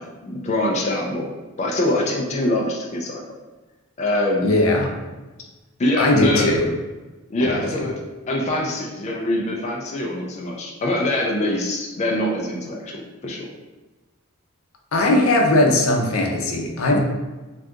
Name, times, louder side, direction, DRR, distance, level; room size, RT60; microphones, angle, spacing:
voice 1, 0.0-1.3 1.6-3.2 4.0-4.5 5.8-6.5 7.3-8.0 8.3-13.5 16.9-17.0, left 1 dB, 30° left, -1 dB, 0.4 m, -24 dB
voice 2, 4.4-5.0 6.0-6.7 7.4-7.6 14.9-17.0, left 1 dB, 85° left, 1 dB, 0.5 m, -19 dB
2.7 x 2.4 x 3.5 m, 1.2 s
head